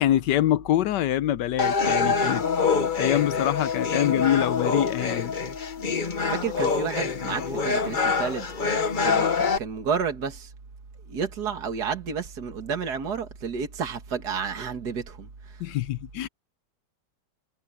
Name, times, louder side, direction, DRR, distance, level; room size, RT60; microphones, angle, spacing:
voice 1, 0.0-2.4 2.9-5.3 15.6-16.3, left 12 dB, 80° left, 1.2 m, -25 dB
sound 1, 1.6-9.6, left 5 dB, 35° left, 1.0 m, -25 dB
voice 2, 6.2-8.5 9.0-10.5 11.1-15.6, right 6 dB, 65° right, 2.5 m, -31 dB
omnidirectional pair, 1.9 m